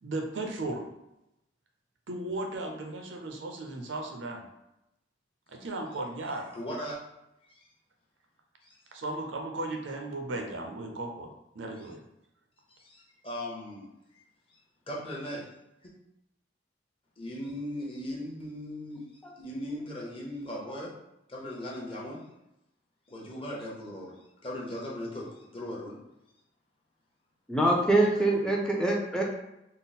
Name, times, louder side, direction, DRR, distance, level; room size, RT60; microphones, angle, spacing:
voice 1, 0.0-0.9 2.1-4.4 5.5-6.5 8.9-11.3 11.5-12.0, right 2 dB, 90° right, 3 dB, 0.6 m, -36 dB
voice 2, 6.5-7.0 7.5-7.6 8.6-8.8 12.7-13.9 14.5-14.6 14.9-15.4 15.8-15.9 17.2-19.1 19.4-20.9 21.3-22.2 23.1-24.2 24.4-26.0, left 1 dB, 30° left, -3 dB, 0.8 m, -38 dB
voice 3, 27.5-29.2, right 2 dB, 5° left, -2 dB, 0.5 m, -24 dB
3.7 x 2.0 x 4.1 m, 0.89 s
head